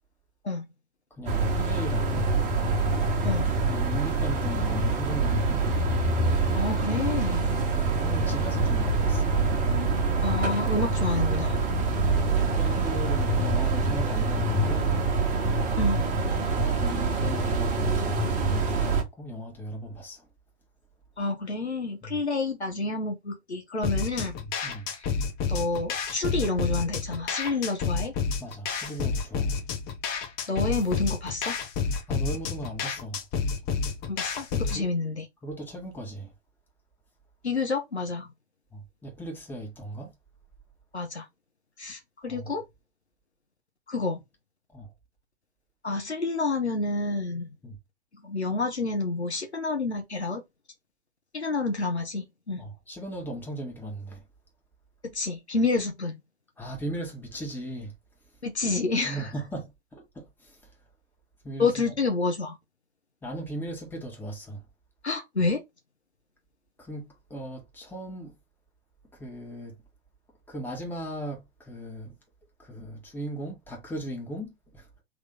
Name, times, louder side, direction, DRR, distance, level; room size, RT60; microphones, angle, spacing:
voice 1, 1.1-2.3 3.7-5.7 7.5-9.3 12.0-14.9 16.0-16.3 16.5-20.3 22.0-22.2 24.4-24.9 28.4-29.6 32.1-33.2 34.7-34.9 35.4-36.3 38.7-40.1 42.2-42.6 44.7-44.9 47.6-47.8 52.6-54.2 56.6-57.9 59.0-60.6 61.4-62.0 63.2-64.6 66.8-68.3 69.1-69.8 70.5-72.2 72.6-74.9, right 1 dB, 5° left, 1.7 m, -37 dB
sound 1, 1.3-19.0, right 3 dB, 25° right, 1.2 m, -25 dB
voice 2, 6.5-7.5 10.2-11.5 15.8-16.0 21.2-24.3 24.9-25.1 25.5-28.1 30.5-31.6 34.1-35.2 37.4-38.3 40.9-41.2 41.8-42.6 43.9-44.2 45.8-47.5 48.2-50.4 51.3-52.6 55.0-56.2 58.4-59.3 61.6-62.6 65.0-65.6, left 3 dB, 85° left, 1.1 m, -29 dB
sound 2, 23.8-34.8, left 5 dB, 30° left, 1.0 m, -30 dB
3.7 x 3.2 x 3.8 m
figure-of-eight pair, 105°, 32 cm